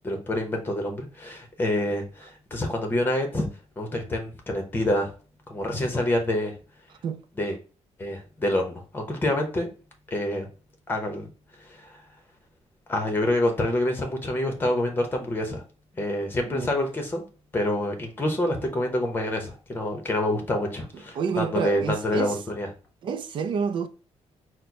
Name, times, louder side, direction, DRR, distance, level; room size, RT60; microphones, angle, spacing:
voice 1, 0.0-3.5 3.8-5.1 5.5-6.5 7.4-7.6 8.0-9.7 10.1-10.5 10.9-11.3 11.6-12.0 12.9-15.6 15.9-17.2 17.5-22.7, left 1 dB, 15° left, 0.9 m, -27 dB
voice 2, 21.2-22.4 23.0-23.9, right 6 dB, 45° right, 0.4 m, -29 dB
4.4 x 2.2 x 4.5 m
cardioid pair, 175°, 12 cm